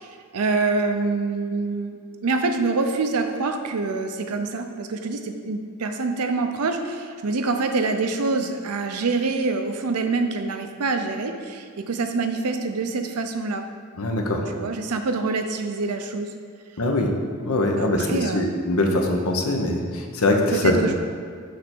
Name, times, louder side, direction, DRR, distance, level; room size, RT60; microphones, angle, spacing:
voice 1, 0.3-13.6 14.5-16.3 17.8-18.5 20.5-21.0, right 3 dB, 85° right, 6 dB, 0.6 m, -25 dB
voice 2, 14.0-14.4 16.8-17.1 17.4-20.8, left 1 dB, 70° left, 2 dB, 0.8 m, -22 dB
6.5 x 3.4 x 6.0 m, 2.1 s
head